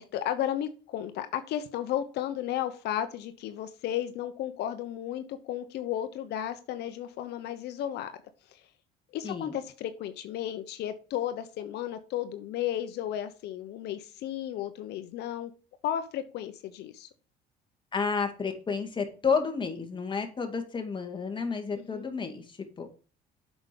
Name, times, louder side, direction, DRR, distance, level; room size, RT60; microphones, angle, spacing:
voice 1, 0.0-8.1 8.5-8.6 9.1-15.5 15.8-17.1 21.8-22.1, left 11 dB, 75° left, 9 dB, 1.0 m, -34 dB
voice 2, 17.9-22.9, left 5 dB, 30° left, 5 dB, 2.3 m, -31 dB
8.0 x 6.2 x 5.3 m, 0.36 s
cardioid pair, 110°, 17 cm